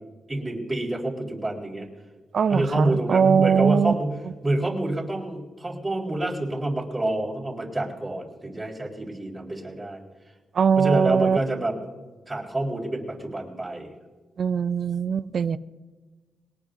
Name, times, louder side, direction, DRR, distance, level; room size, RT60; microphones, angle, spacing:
voice 1, 0.3-1.9 2.5-4.2 4.4-10.0 10.8-11.8 12.3-13.9, right 1 dB, 15° right, -4 dB, 4.0 m, -27 dB
voice 2, 2.3-3.9 10.5-11.4 14.4-15.6, right 7 dB, 55° right, 15 dB, 0.5 m, -21 dB
21.5 x 18.5 x 2.7 m, 1.3 s
cardioid pair, 95°, 0 cm